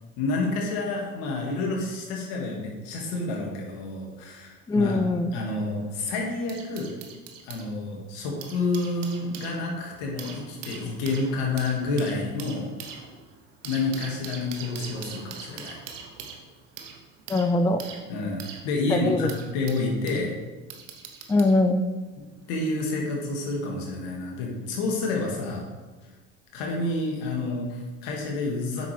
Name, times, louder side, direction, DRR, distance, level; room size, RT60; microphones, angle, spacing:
voice 1, 0.2-5.0 5.3-6.9 7.4-12.7 13.6-15.8 18.1-20.3 22.2-25.7 26.5-28.9, left 2 dB, 70° left, -1 dB, 2.1 m, -29 dB
voice 2, 4.7-5.3 17.3-17.8 18.9-19.2 21.3-21.9, left 2 dB, 10° left, 8 dB, 0.4 m, -22 dB
sound 1, 5.6-7.7 8.2-20.3 20.7-21.6 22.5-22.7, right 7 dB, 80° right, 1.1 m, -43 dB
8.3 x 6.2 x 3.4 m, 1.3 s
hypercardioid pair, 70°, 37 cm